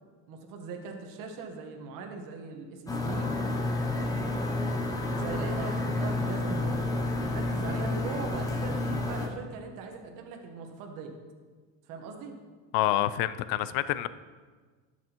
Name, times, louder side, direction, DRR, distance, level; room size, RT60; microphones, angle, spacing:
voice 1, 0.3-3.5 5.2-6.9 7.1-11.1 11.9-12.4, right 5 dB, 55° right, 3 dB, 1.3 m, -40 dB
sound 1, 2.9-9.3, left 2 dB, 10° left, 0.6 m, -30 dB
voice 2, 12.7-14.1, left 14 dB, 60° left, 15 dB, 0.5 m, -27 dB
12.0 x 6.0 x 3.0 m, 1.4 s
cardioid pair, 155°, 40 cm